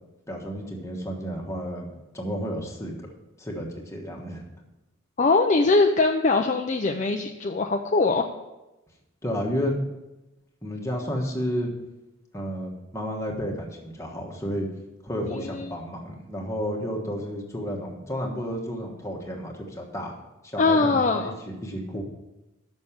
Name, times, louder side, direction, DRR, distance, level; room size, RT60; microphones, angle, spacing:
voice 1, 0.3-1.9 2.1-2.9 3.4-4.4 9.2-9.8 10.6-11.7 12.3-14.7 15.0-20.1 20.4-22.0, equal, 15° left, 0 dB, 1.3 m, -31 dB
voice 2, 5.2-8.2 15.3-15.7 20.6-21.4, left 3 dB, 35° left, 4 dB, 0.4 m, -22 dB
6.4 x 6.3 x 7.1 m, 1.0 s
head